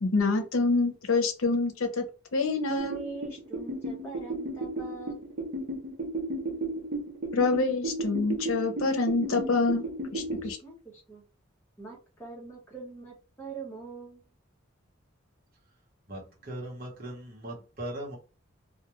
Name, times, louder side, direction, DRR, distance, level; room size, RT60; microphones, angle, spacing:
voice 1, 0.0-2.0 2.3-3.0 7.3-9.9 10.1-10.6, left 3 dB, 90° left, 5 dB, 0.6 m, -26 dB
voice 2, 2.7-5.2 10.4-10.7 11.1-11.2 11.8-14.2, right 4 dB, 10° left, -5 dB, 1.0 m, -42 dB
sound 1, 2.8-10.5, right 2 dB, 65° right, 0.7 m, -34 dB
voice 3, 16.1-18.2, right 1 dB, 45° right, -2 dB, 1.0 m, -39 dB
2.3 x 2.2 x 2.9 m, 0.33 s
head